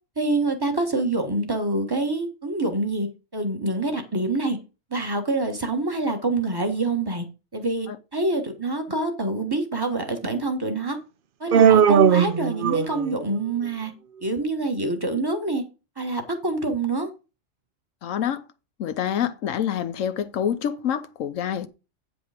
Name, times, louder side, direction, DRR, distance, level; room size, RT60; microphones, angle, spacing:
voice 1, 0.1-4.6 4.9-7.2 7.5-11.0 11.4-13.9 14.2-15.6 16.0-17.1, right 2 dB, 20° right, 1.4 m, -26 dB
Human voice, 11.5-13.2, right 8 dB, 55° right, 0.6 m, -17 dB
voice 2, 18.0-18.4 18.8-21.7, left 9 dB, 90° left, 1.2 m, -27 dB
8.9 x 5.2 x 5.0 m
omnidirectional pair, 1.3 m